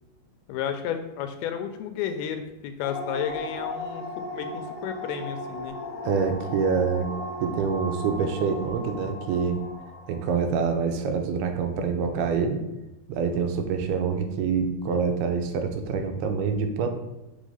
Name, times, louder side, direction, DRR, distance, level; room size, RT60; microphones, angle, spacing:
voice 1, 0.5-5.8, left 8 dB, 80° left, 7 dB, 2.3 m, -32 dB
sound 1, 2.8-10.9, left 1 dB, 65° left, 1.7 m, -37 dB
voice 2, 6.0-7.1 7.4-9.6 10.1-12.6 13.1-16.9, right 5 dB, 85° right, 5 dB, 2.5 m, -26 dB
6.2 x 3.4 x 5.4 m, 0.98 s
omnidirectional pair, 4.6 m